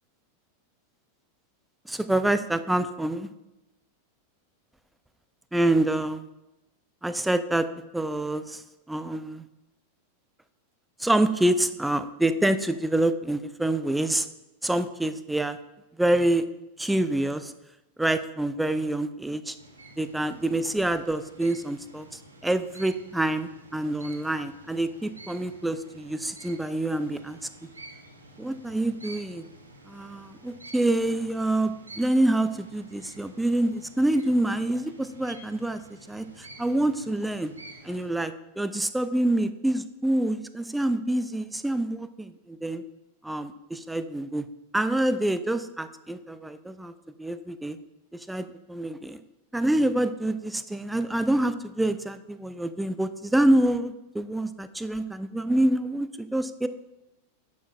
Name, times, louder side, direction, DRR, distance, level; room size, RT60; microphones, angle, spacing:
voice 1, 1.9-3.3 5.5-6.2 7.0-7.7 7.9-8.6 8.9-9.4 11.0-14.3 14.6-15.6 16.0-16.4 16.8-17.5 18.0-19.6 20.0-27.4 28.4-29.4 29.9-35.8 36.1-37.5 37.8-42.8 43.2-44.4 44.7-46.9 47.2-47.8 48.3-49.2 49.5-56.7, right 1 dB, 5° right, 11 dB, 0.4 m, -26 dB
sound 1, 19.5-38.1, right 2 dB, 75° right, 1.0 m, -49 dB
10.5 x 6.3 x 2.4 m, 0.96 s
figure-of-eight pair, 90°, 0 cm